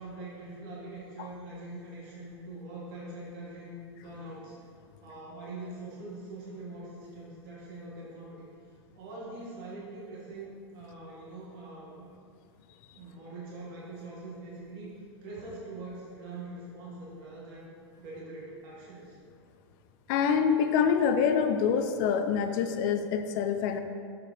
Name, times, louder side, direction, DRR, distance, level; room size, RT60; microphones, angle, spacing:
voice 1, 0.0-4.6 5.0-8.5 9.0-12.1 12.9-14.9 15.2-17.7 18.0-19.2, right 2 dB, 50° right, -6 dB, 1.9 m, -43 dB
voice 2, 20.1-23.8, left 7 dB, 45° left, 8 dB, 0.6 m, -26 dB
7.0 x 4.9 x 5.8 m, 2.3 s
figure-of-eight pair, 95°, 14 cm